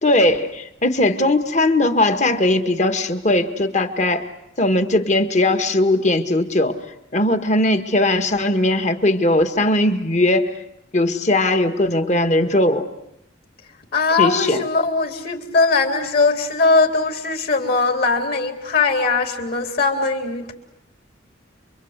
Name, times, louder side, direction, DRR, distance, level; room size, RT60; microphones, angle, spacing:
voice 1, 0.0-4.2 4.6-6.7 7.1-10.5 10.9-12.9 14.2-14.6, left 1 dB, 35° left, 8 dB, 1.8 m, -19 dB
voice 2, 13.9-20.5, left 3 dB, 50° left, 4 dB, 3.8 m, -20 dB
29.5 x 24.0 x 8.3 m, 0.81 s
head